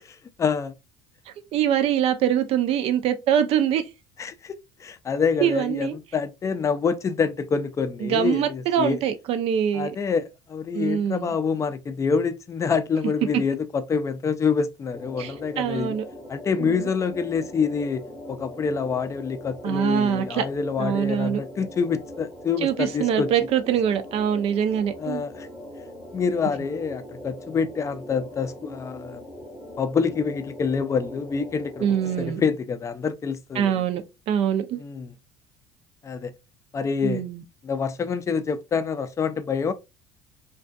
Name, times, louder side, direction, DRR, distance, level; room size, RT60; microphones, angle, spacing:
voice 1, 0.4-0.7 4.2-9.0 9.7-16.0 16.3-23.3 25.0-25.5 26.1-29.2 29.8-31.9 32.2-33.8 34.8-35.1 36.0-36.3 36.7-37.2 37.6-39.7, left 5 dB, 25° left, 0.3 m, -26 dB
voice 2, 1.5-3.8 5.4-6.0 8.0-10.0 10.7-11.3 15.2-16.0 16.6-16.8 19.6-20.4 20.8-21.4 22.6-25.2 31.8-32.4 33.6-34.0 34.3-34.8 37.0-37.4, right 9 dB, 55° right, 0.4 m, -24 dB
sound 1, 14.9-32.3, left 1 dB, 10° right, 0.6 m, -41 dB
2.4 x 2.2 x 2.4 m
supercardioid pair, 90°, 12 cm